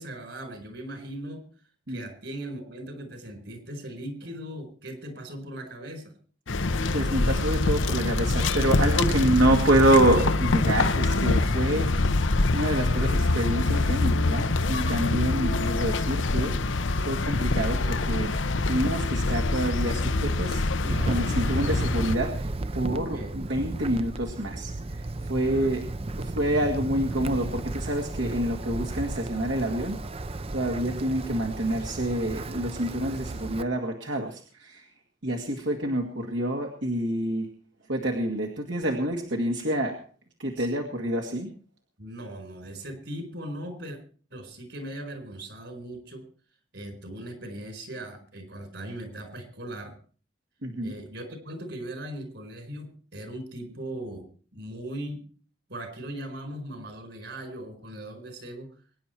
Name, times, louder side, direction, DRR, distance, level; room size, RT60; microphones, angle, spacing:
voice 1, 0.0-1.4 1.9-6.1 23.0-23.3 25.4-25.8 40.6-40.8 42.0-44.0 44.3-46.3 46.7-49.9 50.8-54.3 54.5-55.2 55.7-58.7, right 1 dB, 65° right, 6 dB, 4.7 m, -39 dB
sound 1, 6.5-22.2, left 2 dB, 90° left, 0.9 m, -25 dB
voice 2, 6.9-12.1 12.5-16.5 16.9-18.3 18.7-25.9 26.2-30.0 30.5-34.9 35.2-37.5 37.9-40.0 40.4-41.5 50.6-50.9, right 1 dB, 80° right, 1 dB, 2.1 m, -27 dB
Wind, 20.9-33.6, right 2 dB, 30° right, 0.6 m, -34 dB
23.5 x 10.0 x 4.5 m, 0.42 s
head